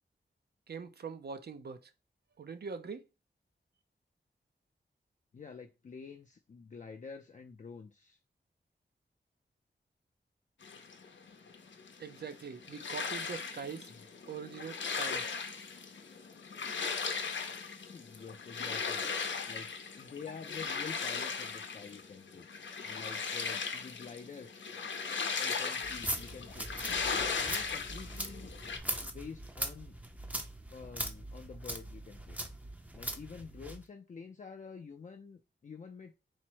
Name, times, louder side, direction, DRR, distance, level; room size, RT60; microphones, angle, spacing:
voice 1, 0.7-1.9 2.4-3.1 12.0-13.9 14.3-15.5, right 6 dB, 60° right, 0.5 m, -43 dB
voice 2, 5.3-8.2 13.9-14.0 17.8-19.1 19.5-22.5 22.8-24.7 25.4-26.7 27.1-28.5 29.0-30.0 30.7-32.4 32.9-36.1, left 5 dB, 40° left, 0.4 m, -48 dB
sound 1, 10.6-28.8, left 5 dB, 90° left, 0.6 m, -38 dB
sound 2, 25.8-33.8, right 1 dB, 10° right, 0.5 m, -41 dB
4.2 x 2.0 x 4.5 m
wide cardioid pair, 120°, 19 cm